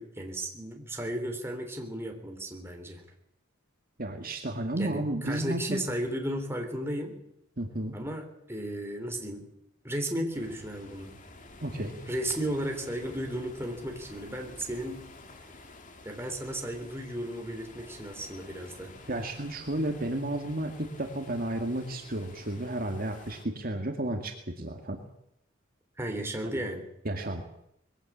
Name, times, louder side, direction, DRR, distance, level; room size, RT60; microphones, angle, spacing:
voice 1, 0.0-3.0 4.8-7.2 7.9-9.4 9.8-11.1 12.1-15.1 16.1-18.9 26.0-26.8, right 1 dB, 10° right, 3 dB, 3.5 m, -34 dB
voice 2, 4.0-5.8 7.6-8.0 11.6-12.0 19.1-25.0 26.4-26.5 27.0-27.4, right 1 dB, 45° right, 4 dB, 2.1 m, -32 dB
sound 1, 10.3-23.5, left 2 dB, 40° left, 2.4 m, -51 dB
21.5 x 15.5 x 8.7 m, 0.79 s
head